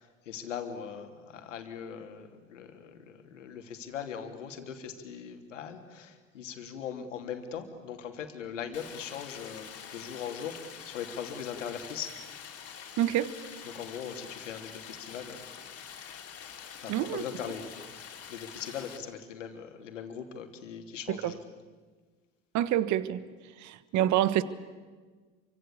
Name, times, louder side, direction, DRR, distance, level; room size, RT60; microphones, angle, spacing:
voice 1, 0.0-12.1 13.4-15.4 16.8-17.8 18.3-21.4, left 7 dB, 80° left, 5 dB, 3.0 m, -40 dB
Stream, 8.7-19.0, left 7 dB, 40° left, 3.9 m, -46 dB
voice 2, 13.0-13.3 16.9-17.2 21.2-21.3 22.5-23.2 23.6-24.4, right 12 dB, 50° right, 15 dB, 1.5 m, -27 dB
28.0 x 24.5 x 8.6 m, 1.4 s
hypercardioid pair, 70°, 36 cm